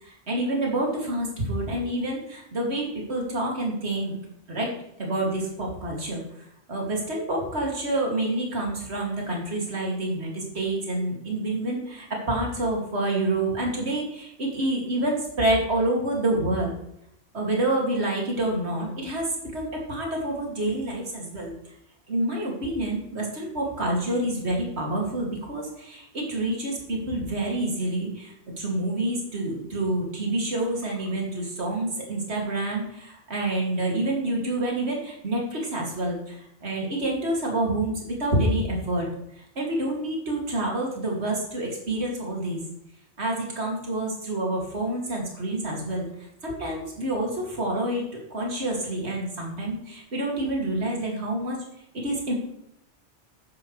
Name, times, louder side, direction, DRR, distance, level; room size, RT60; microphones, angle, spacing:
voice 1, 0.0-4.2 4.5-4.7 5.0-6.2 6.7-16.7 17.3-19.3 19.5-21.5 22.1-39.1 39.4-42.6 43.2-48.0 48.3-51.6 51.9-52.3, right 1 dB, 65° right, -1 dB, 2.7 m, -28 dB
11.5 x 9.7 x 3.2 m, 0.77 s
omnidirectional pair, 1.2 m